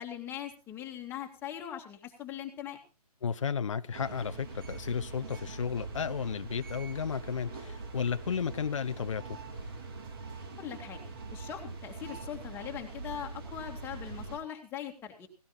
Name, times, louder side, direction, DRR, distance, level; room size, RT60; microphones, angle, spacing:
voice 1, 0.0-2.8 10.6-11.0 11.3-15.3, left 10 dB, 10° left, 2.3 m, -41 dB
voice 2, 3.2-9.4, left 6 dB, 50° left, 0.7 m, -33 dB
sound 1, 3.9-14.4, right 3 dB, 35° right, 3.5 m, -43 dB
18.0 x 17.5 x 2.6 m
figure-of-eight pair, 145°, 20 cm